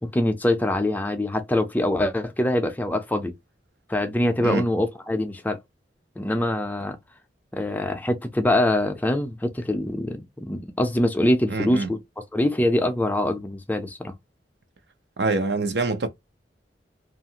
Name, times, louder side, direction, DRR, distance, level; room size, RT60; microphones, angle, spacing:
voice 1, 0.0-3.3 3.9-5.6 6.2-7.0 7.5-12.0 12.3-14.1, left 1 dB, 10° left, 0.4 m, -24 dB
voice 2, 11.5-11.9 15.2-16.1, right 3 dB, 75° right, 0.6 m, -25 dB
2.8 x 2.4 x 2.7 m
head